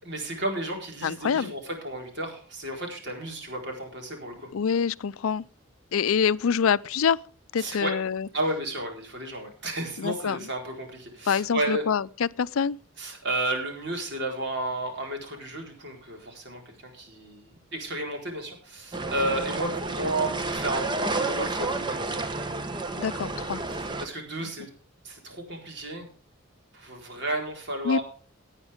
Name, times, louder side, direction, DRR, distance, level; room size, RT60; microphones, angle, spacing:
voice 1, 0.0-4.5 7.6-7.9 8.3-11.9 13.0-22.3 23.7-24.7 25.0-26.1 26.7-28.0, right 1 dB, 55° right, 4.3 m, -32 dB
voice 2, 1.0-1.5 4.5-5.5 5.9-7.2 7.5-8.3 10.0-10.4 11.3-12.8 23.0-23.6 24.4-24.5 27.8-28.0, left 6 dB, 80° left, 0.4 m, -25 dB
sound 1, 18.9-24.0, right 3 dB, 20° right, 1.0 m, -30 dB
18.0 x 9.0 x 3.5 m
head